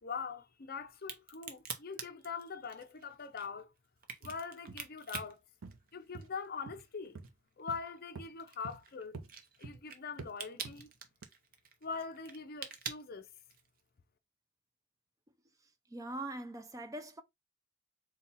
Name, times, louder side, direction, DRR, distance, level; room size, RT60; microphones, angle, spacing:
voice 1, 0.0-3.7 4.2-5.4 5.9-7.2 7.6-9.2 9.6-10.9 11.8-13.3, left 5 dB, 45° left, 0.6 m, -42 dB
Crack, 0.9-6.5 6.8-13.8, right 6 dB, 45° right, 0.7 m, -46 dB
sound 1, 4.2-4.4 4.7-4.8 5.1-5.3 5.6-5.8 6.1-6.3 6.7-6.8 7.2-7.3 7.7-7.8 8.2-8.3 8.6-8.8 9.1-9.3 9.6-9.8 10.2-10.3 10.6-10.8 11.2-11.3, right 4 dB, 80° right, 0.7 m, -47 dB
voice 2, 15.9-17.2, right 1 dB, 15° right, 0.4 m, -42 dB
4.3 x 2.3 x 4.0 m
head